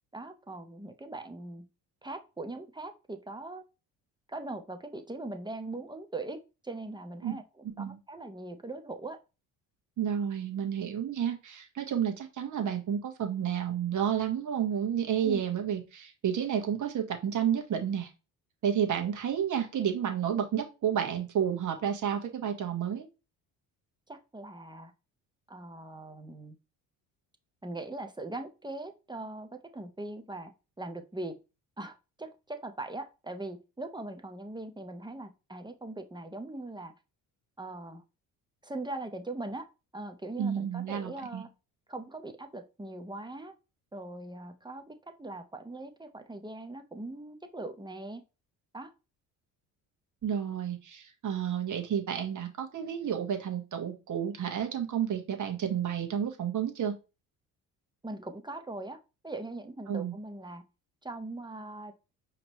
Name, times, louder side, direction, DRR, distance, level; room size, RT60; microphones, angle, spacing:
voice 1, 0.1-1.7 2.0-3.6 4.3-9.2 15.2-15.4 24.1-24.9 25.5-26.5 27.6-30.5 30.8-31.4 31.8-36.9 37.6-38.0 38.6-39.7 39.9-41.5 41.9-43.5 43.9-48.2 48.7-48.9 58.0-60.6 61.0-61.9, right 2 dB, 10° right, 7 dB, 0.8 m, -41 dB
voice 2, 10.0-18.1 18.6-23.1 40.4-41.4 50.2-56.9 59.9-60.1, right 8 dB, 50° right, 4 dB, 1.4 m, -31 dB
5.0 x 3.0 x 3.0 m, 0.29 s
supercardioid pair, 80°, 38 cm